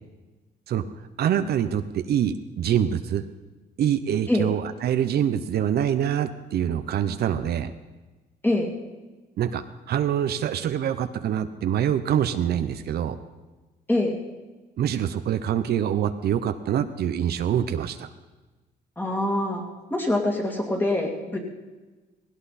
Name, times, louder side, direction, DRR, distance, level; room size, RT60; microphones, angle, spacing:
voice 1, 1.2-3.3 3.8-7.7 9.4-13.2 14.8-18.1, right 9 dB, 70° right, 10 dB, 0.8 m, -25 dB
voice 2, 19.0-19.6 19.9-21.4, left 1 dB, 10° left, 0 dB, 2.6 m, -24 dB
18.0 x 17.0 x 4.2 m, 1.2 s
cardioid pair, 125°, 17 cm